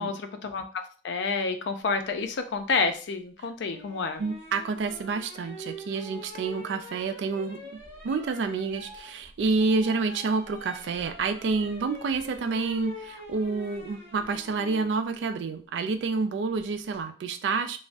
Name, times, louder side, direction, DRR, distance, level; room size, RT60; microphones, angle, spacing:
voice 1, 0.0-4.2, left 4 dB, 75° left, 7 dB, 0.4 m, -29 dB
sound 1, 3.7-14.9 16.6-17.0, equal, 25° left, 1.3 m, -45 dB
voice 2, 4.2-17.8, right 4 dB, 75° right, 9 dB, 0.3 m, -29 dB
3.4 x 2.0 x 2.4 m, 0.40 s
head